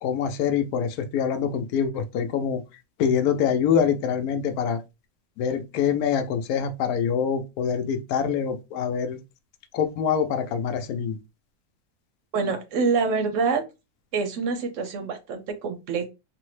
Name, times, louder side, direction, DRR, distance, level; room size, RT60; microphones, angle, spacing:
voice 1, 0.0-2.6 3.0-4.8 5.4-9.2 9.7-11.2, left 7 dB, 80° left, 1.0 m, -25 dB
voice 2, 12.3-13.6 14.1-16.0, right 4 dB, 65° right, 0.8 m, -26 dB
3.5 x 2.0 x 3.1 m
omnidirectional pair, 1.6 m